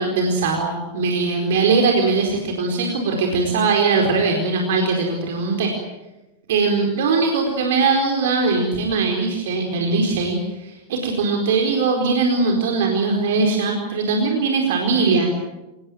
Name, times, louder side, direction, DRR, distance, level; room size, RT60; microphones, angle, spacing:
voice 1, 0.0-5.7 6.5-15.3, right 4 dB, 55° right, 2 dB, 4.4 m, -20 dB
27.0 x 19.0 x 9.3 m, 1.0 s
figure-of-eight pair, 90°, 0 cm